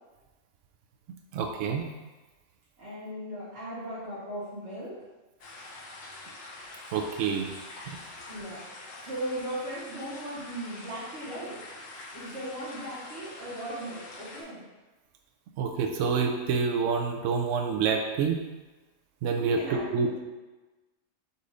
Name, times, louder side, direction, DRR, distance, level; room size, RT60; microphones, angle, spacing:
voice 1, 1.3-1.9 6.9-7.5 7.9-8.0 15.6-18.4 19.2-20.1, right 5 dB, 80° right, 2 dB, 0.9 m, -27 dB
voice 2, 2.8-4.9 8.3-8.6 9.0-11.5 12.1-14.6 19.4-20.1, right 1 dB, 60° right, -10 dB, 1.6 m, -37 dB
sound 1, 5.4-14.4, left 2 dB, 85° left, 1.1 m, -45 dB
4.2 x 2.6 x 4.8 m, 1.2 s
omnidirectional pair, 1.3 m